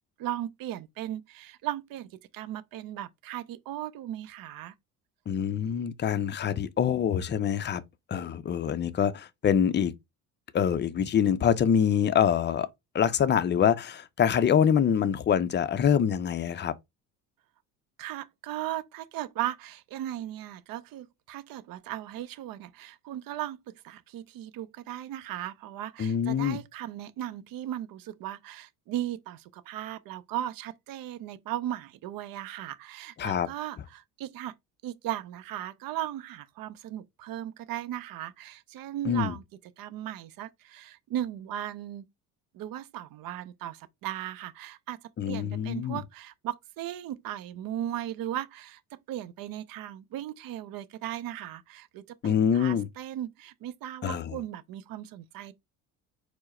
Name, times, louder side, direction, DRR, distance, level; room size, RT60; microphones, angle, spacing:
voice 1, 0.2-4.7 18.0-34.5 34.8-42.1 42.5-55.5, right 12 dB, 50° right, 0.6 m, -37 dB
voice 2, 5.3-7.8 8.1-9.9 10.5-12.7 12.9-16.7 26.0-26.6 33.2-33.5 39.1-39.3 45.2-46.0 52.2-52.9 54.0-54.3, left 8 dB, 25° left, 0.5 m, -25 dB
4.4 x 2.2 x 4.2 m
hypercardioid pair, 65°, 46 cm